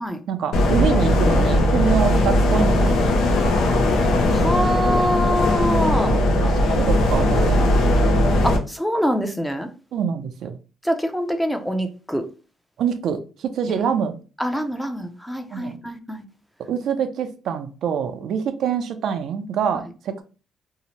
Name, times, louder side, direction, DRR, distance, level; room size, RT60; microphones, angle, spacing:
voice 1, 0.3-3.1 6.1-7.8 9.9-10.6 12.8-14.2 15.5-15.8 16.7-20.2, right 7 dB, 75° right, 0.4 m, -25 dB
sound 1, 0.5-8.6, left 1 dB, 85° left, 0.5 m, -18 dB
voice 2, 4.3-6.2 8.4-9.7 10.8-12.2 13.7-13.8 14.4-16.2, equal, 5° left, 0.5 m, -24 dB
2.7 x 2.1 x 2.9 m
cardioid pair, 90°, 0 cm